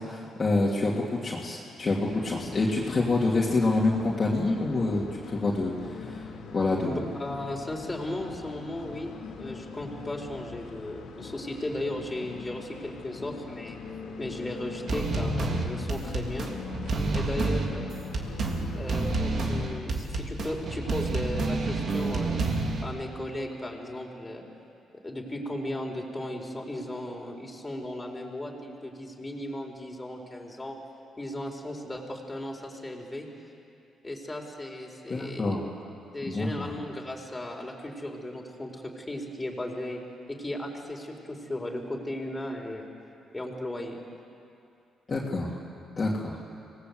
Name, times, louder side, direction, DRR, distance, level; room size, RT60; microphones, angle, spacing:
voice 1, 0.0-6.2 6.5-7.0 35.1-35.7 36.2-36.7 45.1-45.5 46.0-46.4, left 2 dB, 35° left, -4 dB, 3.0 m, -27 dB
sound 1, 2.0-19.8, left 5 dB, 75° left, 2.6 m, -42 dB
voice 2, 6.8-9.1 9.4-13.8 14.2-16.5 17.1-17.9 18.7-22.5 22.8-24.4 25.0-30.8 31.2-33.3 34.0-35.5 36.1-40.0 40.3-42.9 43.3-44.0, left 1 dB, 15° left, 0 dB, 4.2 m, -36 dB
sound 2, 14.9-22.8, right 3 dB, 55° right, 3.0 m, -29 dB
26.0 x 19.0 x 8.1 m, 2.7 s
cardioid pair, 90°, 0 cm